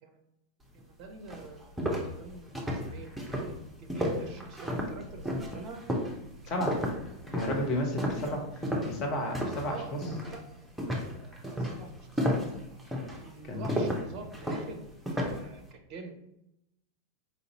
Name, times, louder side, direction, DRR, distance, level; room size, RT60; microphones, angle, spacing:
voice 1, 0.7-1.8 2.2-3.1 3.4-3.5 3.8-5.8 6.4-6.7 8.0-8.3 8.6-8.9 9.6-12.4 13.2-16.2, right 4 dB, 40° right, 5 dB, 0.5 m, -46 dB
sound 1, 0.8-0.9 1.3-9.7 10.0-10.4 10.8-15.5, equal, 5° right, 0.7 m, -32 dB
voice 2, 7.3-8.4 8.8-10.0 13.5-13.8, left 1 dB, 35° left, 2 dB, 0.9 m, -32 dB
4.3 x 2.6 x 2.8 m, 0.84 s
figure-of-eight pair, 90°, 0 cm